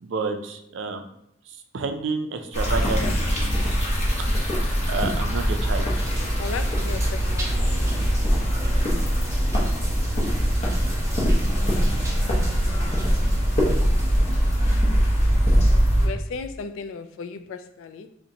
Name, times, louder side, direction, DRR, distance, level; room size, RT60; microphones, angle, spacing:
voice 1, 0.0-1.0 1.7-3.6 4.9-5.9, right 4 dB, 65° right, 0.4 m, -29 dB
sound 1, 2.5-16.1, equal, 35° left, 0.7 m, -22 dB
sound 2, 5.9-15.1, right 1 dB, 15° right, 0.6 m, -39 dB
voice 2, 6.3-8.1 15.9-18.2, left 5 dB, 80° left, 0.3 m, -36 dB
4.0 x 2.1 x 2.7 m
head